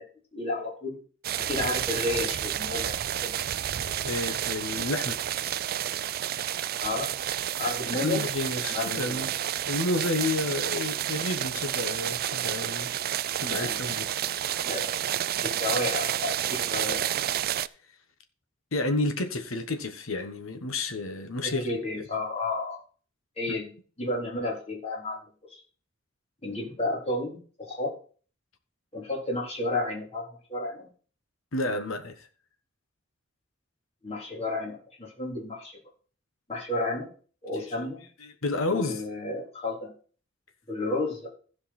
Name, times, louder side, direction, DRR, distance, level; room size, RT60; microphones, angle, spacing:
voice 1, 0.3-1.0 1.4-3.3 6.8-7.1 7.6-8.2 8.7-9.2 13.5-13.8 14.6-14.9 15.4-17.1 21.4-22.8 23.4-23.7 24.0-25.2 25.5-25.6 26.4-27.9 28.9-30.2 30.5-30.9 34.0-35.8 36.5-37.1 37.4-38.0 38.7-39.9 40.7-41.3, left 2 dB, 30° left, 3.8 m, -32 dB
sound 1, 1.2-17.7, right 11 dB, 50° right, 0.4 m, -30 dB
voice 2, 3.8-5.2 7.8-9.3 9.7-12.9 13.4-14.1 18.7-21.8 31.5-32.3 38.2-39.0, left 2 dB, 85° left, 1.3 m, -30 dB
15.5 x 5.2 x 4.3 m
head